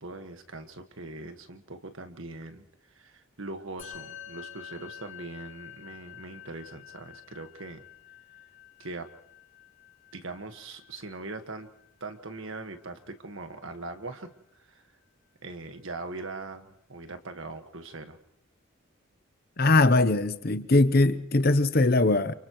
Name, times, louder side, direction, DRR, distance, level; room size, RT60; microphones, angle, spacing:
voice 1, 0.0-2.6 2.9-7.8 8.8-9.1 10.1-11.7 12.0-14.3 14.5-14.8 15.4-18.2, right 2 dB, 70° right, 1.6 m, -41 dB
Musical instrument, 3.8-13.3, left 11 dB, 70° left, 4.4 m, -49 dB
voice 2, 19.6-22.3, left 2 dB, 45° left, 0.7 m, -21 dB
30.0 x 29.0 x 3.1 m
head